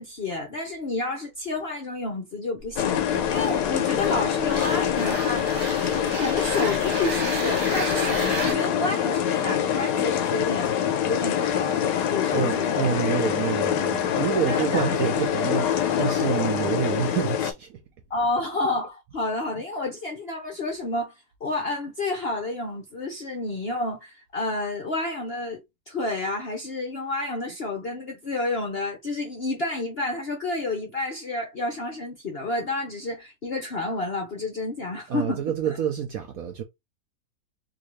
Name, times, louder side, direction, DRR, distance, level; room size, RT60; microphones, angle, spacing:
voice 1, 0.0-5.5 5.9-10.8 11.1-11.8 12.1-12.8 14.5-14.9 18.1-21.1 21.4-25.6 25.9-35.4, left 2 dB, 55° left, 0.7 m, -30 dB
sound 1, 2.6-8.5, right 3 dB, 40° right, 1.4 m, -33 dB
sound 2, 2.8-17.5, left 9 dB, 70° left, 1.1 m, -25 dB
voice 2, 12.3-17.8 35.1-36.6, right 8 dB, 70° right, 0.8 m, -28 dB
3.6 x 2.6 x 3.1 m
omnidirectional pair, 2.0 m